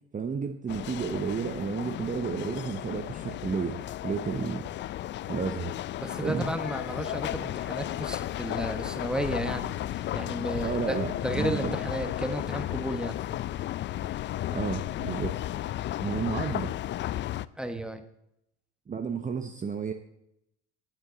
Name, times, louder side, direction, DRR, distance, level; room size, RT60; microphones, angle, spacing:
voice 1, 0.1-4.7 5.3-5.8 6.2-6.5 10.6-11.8 14.5-15.3 16.0-16.7 18.9-19.9, right 6 dB, 25° right, 7 dB, 0.8 m, -32 dB
sound 1, 0.7-17.5, left 13 dB, 35° left, 0.4 m, -34 dB
voice 2, 6.0-13.2 17.6-18.0, right 1 dB, ahead, 8 dB, 1.3 m, -33 dB
17.5 x 8.0 x 3.9 m, 0.79 s
hypercardioid pair, 80°, 33 cm